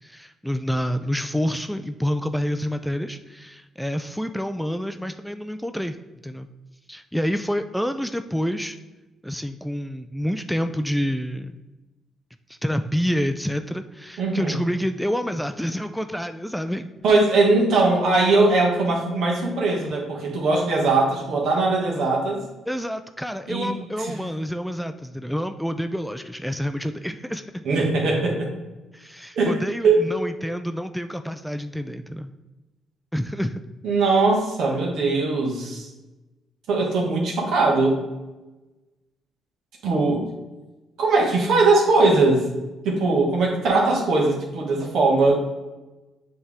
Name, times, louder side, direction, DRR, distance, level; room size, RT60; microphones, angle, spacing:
voice 1, 0.0-6.0 6.2-6.5 6.9-8.8 9.2-11.6 12.5-16.9 22.7-27.6 28.9-32.3 33.1-33.6, equal, ahead, 9 dB, 0.3 m, -28 dB
voice 2, 14.2-14.6 17.0-22.4 23.5-23.7 24.0-24.1 27.6-28.5 29.3-29.6 29.8-30.0 33.8-35.9 36.7-38.0 39.8-40.2 41.0-42.5 42.8-45.4, right 3 dB, 75° right, -1 dB, 1.6 m, -20 dB
7.9 x 3.4 x 3.6 m, 1.1 s
cardioid pair, 90°, 0 cm